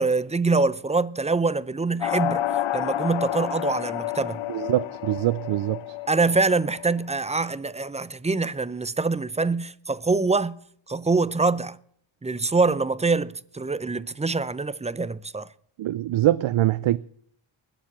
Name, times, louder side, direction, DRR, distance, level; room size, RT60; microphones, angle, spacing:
voice 1, 0.0-2.4 2.7-4.4 6.1-10.6 10.9-11.8 12.2-15.5, right 3 dB, 15° right, 0.5 m, -24 dB
sound 1, 2.0-7.0, left 12 dB, 75° left, 0.8 m, -30 dB
voice 2, 4.5-5.8 15.8-17.0, right 14 dB, 75° right, 0.6 m, -23 dB
20.5 x 7.1 x 7.4 m
cardioid pair, 90°, 48 cm